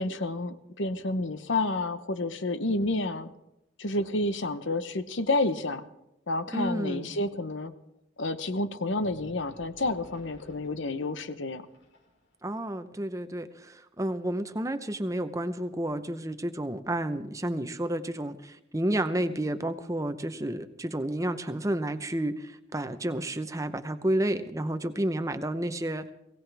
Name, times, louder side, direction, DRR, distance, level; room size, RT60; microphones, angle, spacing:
voice 1, 0.0-3.3 3.8-5.8 6.3-7.7 8.2-11.6, left 2 dB, 70° left, 11 dB, 1.0 m, -30 dB
voice 2, 6.5-7.2 12.4-26.0, right 1 dB, 15° right, 9 dB, 0.8 m, -31 dB
sound 1, 9.0-12.5, left 1 dB, 85° left, 6.2 m, -55 dB
22.5 x 17.5 x 3.4 m, 0.85 s
head